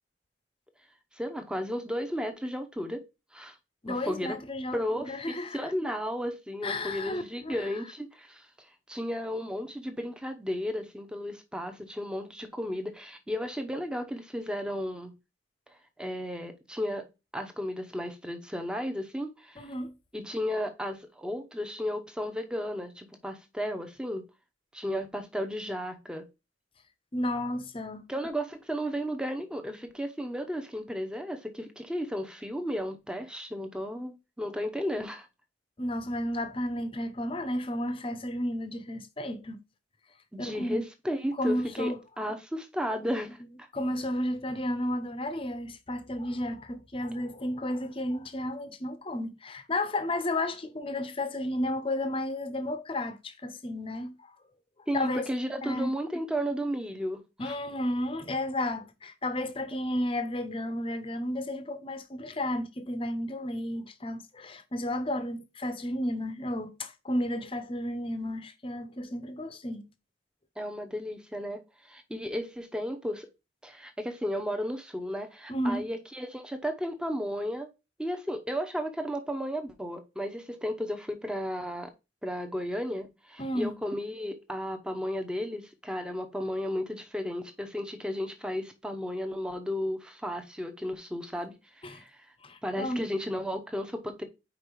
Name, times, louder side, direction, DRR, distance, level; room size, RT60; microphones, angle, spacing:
voice 1, 1.1-3.0 3.3-3.6 3.9-4.4 4.7-8.5 8.9-15.1 16.0-17.1 17.3-19.7 20.1-24.3 24.7-26.3 28.1-35.3 40.3-43.7 54.9-57.5 70.6-73.3 73.6-77.7 78.0-81.9 82.2-91.6 91.9-92.2 92.6-94.2, equal, 5° right, 0.8 m, -34 dB
voice 2, 3.8-5.7 6.6-7.7 19.6-19.9 27.1-28.1 35.8-39.6 40.4-40.8 41.4-42.0 43.0-43.1 43.7-54.3 54.9-55.3 55.6-55.9 57.4-69.8 75.5-75.9 83.4-83.7 91.8-92.0 92.4-93.0, left 1 dB, 25° left, 0.7 m, -32 dB
5.2 x 4.5 x 4.6 m
head